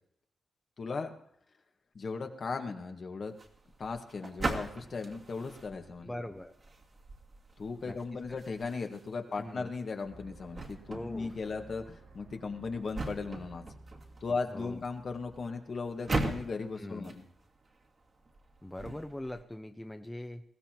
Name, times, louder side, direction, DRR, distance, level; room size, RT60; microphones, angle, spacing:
voice 1, 0.8-1.1 2.0-3.3 3.8-6.1 7.6-13.7 14.2-17.2, left 4 dB, 55° left, 4 dB, 1.7 m, -37 dB
sound 1, 3.3-19.4, right 2 dB, 50° right, 2.4 m, -41 dB
voice 2, 6.0-6.5 7.9-8.0 9.4-9.7 10.9-11.3 14.3-14.8 16.8-17.1 18.6-20.4, left 1 dB, 10° left, 6 dB, 1.0 m, -42 dB
sound 2, 10.0-16.0, right 2 dB, 80° right, 7.3 m, -54 dB
20.5 x 15.5 x 3.0 m, 0.74 s
cardioid pair, 60°, 0 cm